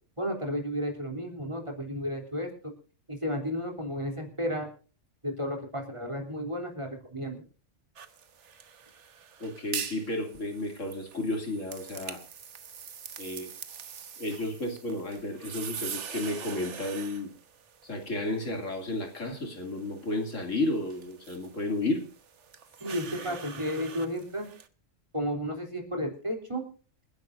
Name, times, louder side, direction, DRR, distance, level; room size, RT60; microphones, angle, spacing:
voice 1, 0.2-2.5 3.1-4.7 5.2-7.4 22.8-24.5 25.1-26.6, equal, 25° right, 2 dB, 3.4 m, -33 dB
sound 1, 8.0-24.7, right 7 dB, 70° right, 1.4 m, -44 dB
voice 2, 9.4-12.2 13.2-13.5 14.2-17.3 17.8-22.0 23.1-23.3, left 2 dB, 90° left, 3 dB, 3.2 m, -32 dB
28.0 x 10.5 x 2.6 m, 0.37 s
omnidirectional pair, 1.3 m